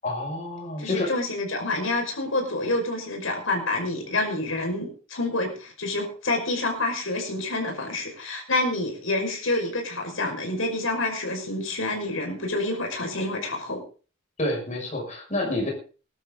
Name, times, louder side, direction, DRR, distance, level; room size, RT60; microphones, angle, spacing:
voice 1, 0.0-1.1 14.4-15.7, left 1 dB, 35° left, -1 dB, 6.4 m, -28 dB
voice 2, 0.8-13.8, left 2 dB, 80° left, 3 dB, 5.5 m, -28 dB
20.5 x 12.0 x 3.9 m, 0.37 s
head